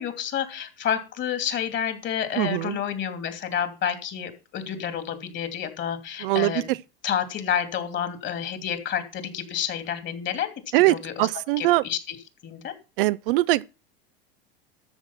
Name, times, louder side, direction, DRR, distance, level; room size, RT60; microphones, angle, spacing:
voice 1, 0.0-6.7 7.0-10.5 10.9-11.3 11.6-12.2 12.4-12.7, left 9 dB, 40° left, 2.8 m, -29 dB
voice 2, 2.4-2.8 6.2-6.8 10.7-11.8 13.0-13.6, right 19 dB, 65° right, 0.6 m, -22 dB
13.5 x 6.4 x 5.7 m
hypercardioid pair, 90°, 30 cm